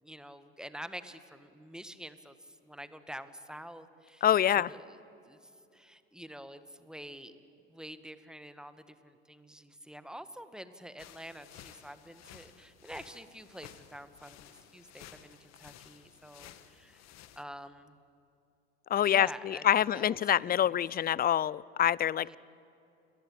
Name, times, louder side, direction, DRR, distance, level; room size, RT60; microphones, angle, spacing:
voice 1, 0.0-4.3 4.7-7.4 7.7-17.1 17.4-18.0 19.1-20.8 22.2-22.4, equal, ahead, 11 dB, 1.8 m, -47 dB
voice 2, 4.2-4.7 18.9-22.4, left 10 dB, 30° left, 24 dB, 0.6 m, -26 dB
sound 1, 11.0-17.4, left 11 dB, 50° left, 1.9 m, -54 dB
29.5 x 22.5 x 8.8 m, 2.7 s
hypercardioid pair, 70°, 33 cm